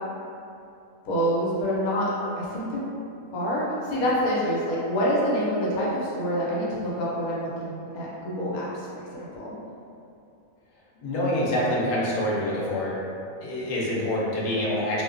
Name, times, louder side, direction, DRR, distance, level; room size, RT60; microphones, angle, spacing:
voice 1, 1.0-2.1 2.4-2.8 3.3-9.5, equal, 90° left, -6 dB, 1.1 m, -27 dB
voice 2, 11.0-13.0 13.4-15.0, left 1 dB, 70° left, -6 dB, 0.5 m, -26 dB
2.4 x 2.1 x 2.4 m, 2.6 s
omnidirectional pair, 1.5 m